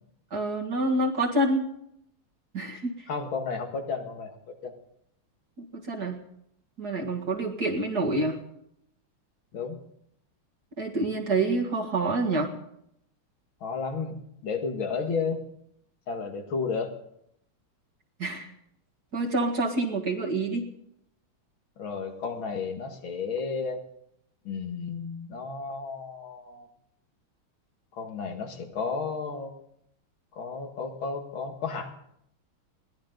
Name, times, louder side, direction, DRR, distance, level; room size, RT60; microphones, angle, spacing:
voice 1, 0.3-1.7 2.5-3.1 5.6-6.2 6.8-8.4 10.8-12.5 18.2-18.5 19.1-20.7, right 2 dB, 50° right, -1 dB, 2.4 m, -27 dB
voice 2, 3.1-4.7 9.5-9.8 13.6-15.4 16.1-16.9 21.8-23.8 24.4-26.7 27.9-29.5 30.3-31.9, left 5 dB, 70° left, 4 dB, 2.6 m, -32 dB
21.5 x 17.0 x 3.9 m, 0.74 s
omnidirectional pair, 2.3 m